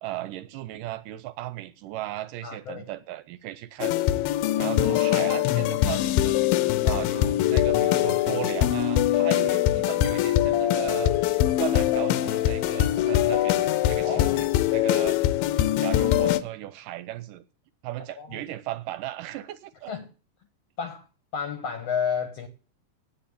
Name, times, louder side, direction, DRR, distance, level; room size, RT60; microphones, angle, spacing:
voice 1, 0.0-4.0 4.6-6.4 6.8-11.2 11.6-15.2 15.8-17.4 17.8-19.9, right 15 dB, 75° right, 2.2 m, -36 dB
voice 2, 2.4-2.9 4.9-5.0 14.0-14.5 18.2-18.4 19.9-20.1 20.8-21.1 21.3-22.5, left 6 dB, 65° left, 1.7 m, -31 dB
sound 1, 3.8-16.4, left 13 dB, 85° left, 2.5 m, -23 dB
8.5 x 8.4 x 8.5 m
omnidirectional pair, 4.0 m